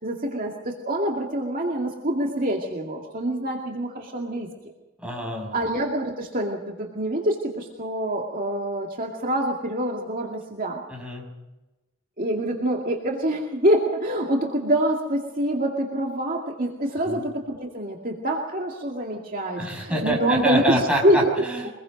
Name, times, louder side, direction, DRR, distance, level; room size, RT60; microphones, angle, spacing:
voice 1, 0.0-4.5 5.5-10.8 12.2-21.3, right 1 dB, 45° right, 0 dB, 2.2 m, -25 dB
voice 2, 5.0-5.6 10.9-11.2 17.1-17.2 19.6-21.7, right 1 dB, 5° right, -1 dB, 5.9 m, -26 dB
24.5 x 21.0 x 5.3 m, 1.1 s
head